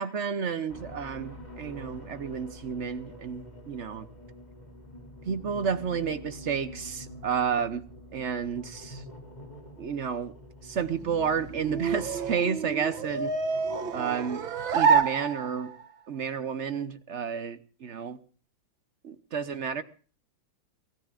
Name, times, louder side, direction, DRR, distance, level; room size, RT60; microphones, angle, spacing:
voice 1, 0.0-4.1 5.3-7.8 8.1-9.0 9.8-10.3 10.6-13.3 13.9-14.4 14.7-15.7 16.1-18.2 19.0-19.8, right 7 dB, 50° right, 0.9 m, -31 dB
sound 1, 0.7-12.3, left 1 dB, 20° left, 3.1 m, -46 dB
sound 2, 10.9-15.9, right 5 dB, 75° right, 2.0 m, -28 dB
25.5 x 17.0 x 2.5 m
omnidirectional pair, 2.2 m